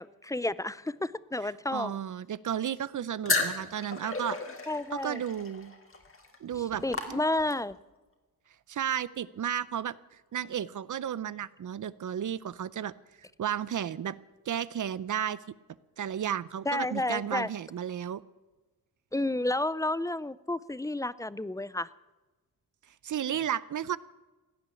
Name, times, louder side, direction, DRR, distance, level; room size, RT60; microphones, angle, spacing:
voice 1, 0.0-1.9 4.7-5.2 6.8-7.8 16.7-17.5 19.1-21.9, left 2 dB, 10° left, 0.4 m, -31 dB
voice 2, 1.4-4.4 4.9-5.7 6.4-7.2 8.7-10.0 10.3-12.9 13.4-14.2 14.5-15.4 16.0-18.2 23.0-24.0, right 9 dB, 55° right, 0.6 m, -33 dB
sound 1, 3.3-7.7, left 3 dB, 35° left, 2.6 m, -34 dB
16.5 x 10.0 x 8.3 m
cardioid pair, 100°, 37 cm